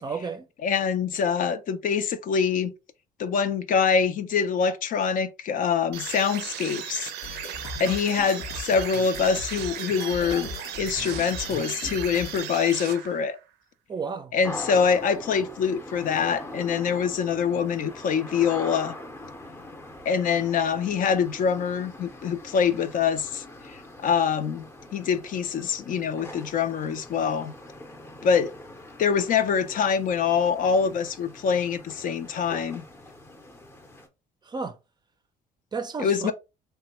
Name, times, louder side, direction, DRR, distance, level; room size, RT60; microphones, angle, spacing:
voice 1, 0.0-0.5 13.9-14.3 34.4-34.8 35.7-36.3, right 4 dB, 25° right, 0.4 m, -32 dB
voice 2, 0.6-2.7 3.2-7.1 7.8-10.5 10.8-13.4 14.3-18.9 20.1-24.6 24.9-27.5 28.2-28.5 29.0-32.8 36.0-36.3, left 6 dB, 55° left, 0.4 m, -25 dB
sound 1, 5.9-13.4, right 10 dB, 80° right, 0.5 m, -36 dB
sound 2, 7.2-12.4, left 3 dB, 80° left, 1.1 m, -39 dB
sound 3, 14.4-34.1, left 1 dB, 15° left, 0.6 m, -42 dB
3.2 x 2.2 x 2.9 m
cardioid pair, 110°, 17 cm